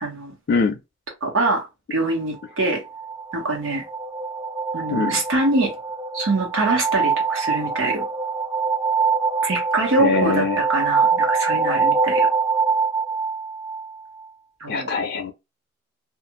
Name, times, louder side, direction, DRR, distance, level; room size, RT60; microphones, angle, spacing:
voice 1, 0.0-0.3 1.2-2.8 3.3-3.8 4.7-5.7 6.1-8.1 9.4-12.3 14.6-14.9, right 2 dB, 85° right, 1.1 m, -24 dB
sound 1, 2.6-14.3, right 5 dB, 20° right, 0.4 m, -24 dB
voice 2, 10.0-10.6 14.7-15.3, left 4 dB, 55° left, 0.4 m, -22 dB
2.5 x 2.3 x 2.9 m
head